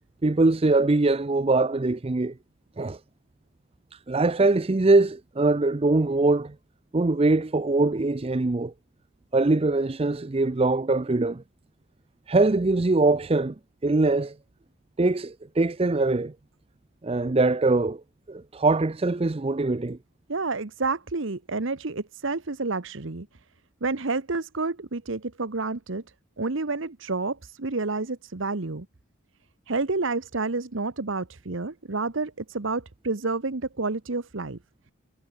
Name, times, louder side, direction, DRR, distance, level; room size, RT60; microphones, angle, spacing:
voice 1, 0.2-2.3 2.8-3.0 3.9-6.5 6.9-8.7 9.3-11.4 12.3-13.5 13.8-14.4 15.0-16.3 17.0-18.0 18.3-20.0, right 2 dB, 25° right, 0.5 m, -22 dB
voice 2, 20.3-23.3 23.8-26.0 26.4-28.9 29.7-34.6, right 3 dB, 60° right, 1.1 m, -29 dB
head